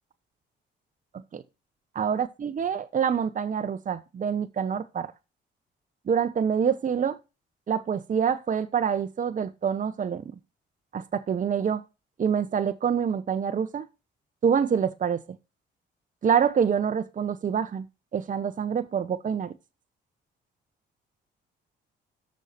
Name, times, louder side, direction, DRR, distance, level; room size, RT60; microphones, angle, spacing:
voice 1, 1.9-5.1 6.1-7.2 7.7-10.3 10.9-11.8 12.2-13.9 14.4-15.2 16.2-17.8 18.1-19.5, right 7 dB, 40° right, 1.0 m, -26 dB
11.5 x 6.7 x 4.2 m
cardioid pair, 90°, 20 cm